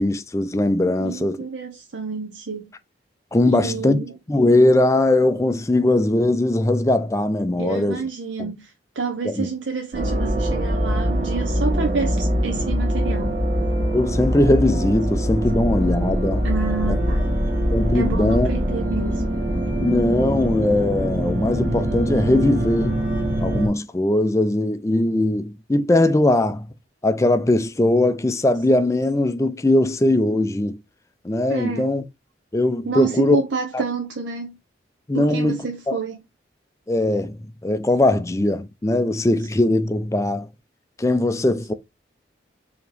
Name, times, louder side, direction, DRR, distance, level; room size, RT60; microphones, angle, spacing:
voice 1, 0.0-1.5 3.3-4.0 4.3-8.0 8.4-8.5 9.2-9.5 13.9-16.5 17.7-18.5 19.8-23.0 23.4-26.7 27.0-30.8 31.2-32.0 32.5-33.4 33.7-33.8 35.1-36.0 36.9-40.5 41.0-41.7, left 1 dB, 15° left, 0.4 m, -20 dB
voice 2, 1.0-2.7 3.4-4.1 7.6-13.4 16.4-17.3 17.9-19.2 31.5-31.9 32.9-34.6 35.1-36.2, right 4 dB, 80° right, 0.7 m, -29 dB
sound 1, 9.9-23.7, equal, 45° right, 1.5 m, -23 dB
4.7 x 2.9 x 3.2 m
head